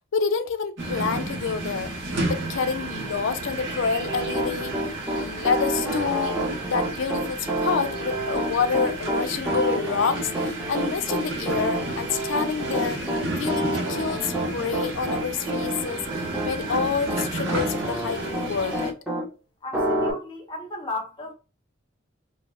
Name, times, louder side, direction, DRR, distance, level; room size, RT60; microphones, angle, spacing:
voice 1, 0.1-1.9 2.3-4.7 5.1-13.0 13.4-18.9, left 5 dB, 80° left, 0.4 m, -28 dB
sound 1, 0.8-18.9, right 2 dB, 85° right, 1.0 m, -32 dB
Piano, 4.1-19.3 19.7-20.1, right 1 dB, 5° right, 0.9 m, -28 dB
voice 2, 19.6-21.3, left 2 dB, 25° left, 0.8 m, -34 dB
2.8 x 2.4 x 3.2 m
head